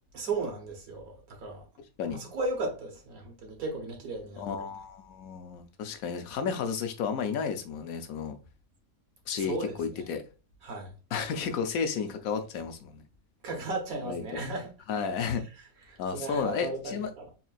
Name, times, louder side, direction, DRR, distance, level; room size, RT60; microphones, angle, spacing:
voice 1, 0.1-1.7 2.1-4.7 9.3-10.1 10.6-10.9 13.4-14.7 15.3-17.3, right 3 dB, 80° right, 1.6 m, -36 dB
voice 2, 4.4-8.4 9.3-10.2 11.1-13.0 14.1-14.4 14.9-15.4 16.0-17.1, left 6 dB, 80° left, 1.1 m, -32 dB
4.5 x 3.3 x 2.3 m
omnidirectional pair, 1.5 m